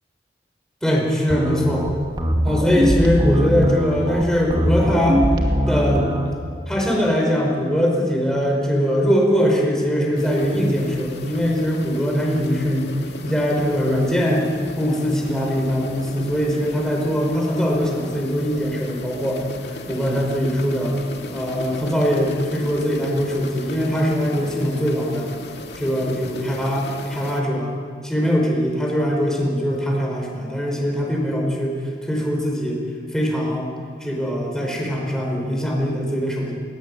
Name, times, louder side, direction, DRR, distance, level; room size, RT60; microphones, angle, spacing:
voice 1, 0.8-1.9 2.4-5.2 5.7-6.1 6.7-12.9 13.2-14.5 14.8-19.4 19.7-21.0 21.3-25.3 25.8-27.7 28.0-32.8 33.1-33.7 34.0-36.5, equal, 5° left, -1 dB, 5.1 m, -21 dB
sound 1, 1.3-6.3, equal, 25° right, 2.3 m, -21 dB
sound 2, 10.2-27.4, left 2 dB, 75° left, 2.1 m, -36 dB
21.0 x 20.5 x 8.6 m, 2.1 s
head